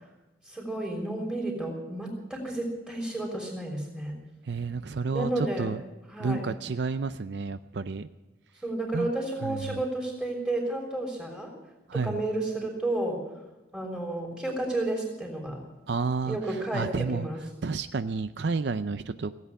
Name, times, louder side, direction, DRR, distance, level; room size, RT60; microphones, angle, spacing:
voice 1, 0.4-4.2 5.1-5.7 6.1-6.4 8.6-11.5 11.9-13.2 13.7-15.6 16.3-17.4, right 2 dB, 5° right, -1 dB, 3.3 m, -31 dB
voice 2, 4.4-5.8 6.2-8.1 8.9-9.1 9.4-9.8 11.9-12.2 15.9-16.4 16.7-17.3 17.6-19.3, right 4 dB, 70° right, 12 dB, 0.5 m, -30 dB
16.5 x 8.3 x 9.6 m, 1.0 s
head